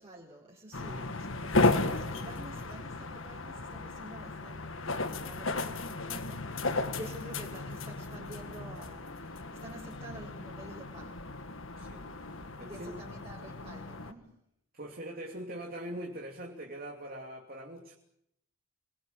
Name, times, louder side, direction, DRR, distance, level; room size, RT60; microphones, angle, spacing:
voice 1, 0.0-11.2 12.3-14.3, right 1 dB, 25° right, -4 dB, 4.6 m, -49 dB
sound 1, 0.7-14.1, left 2 dB, 60° left, 1.7 m, -34 dB
voice 2, 11.7-13.0 14.7-17.9, right 1 dB, 45° right, 1 dB, 3.0 m, -42 dB
27.5 x 21.5 x 8.4 m, 0.77 s
head